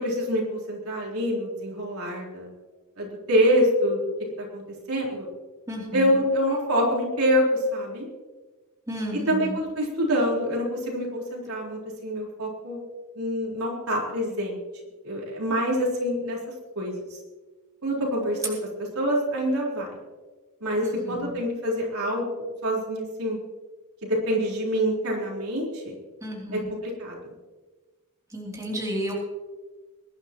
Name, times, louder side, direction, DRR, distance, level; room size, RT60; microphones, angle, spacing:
voice 1, 0.0-2.5 3.0-4.0 4.5-4.6 4.9-5.3 5.9-7.4 7.7-8.1 9.3-12.8 13.2-14.6 15.0-16.4 16.8-17.2 17.8-18.6 18.9-19.9 20.6-23.4 24.0-25.9 26.5-27.2, equal, 75° right, -3 dB, 4.1 m, -26 dB
voice 2, 5.7-6.2 8.9-9.6 20.8-21.3 26.2-26.7 28.3-29.1, equal, 15° right, -3 dB, 3.1 m, -32 dB
22.0 x 11.5 x 3.0 m, 1.3 s
head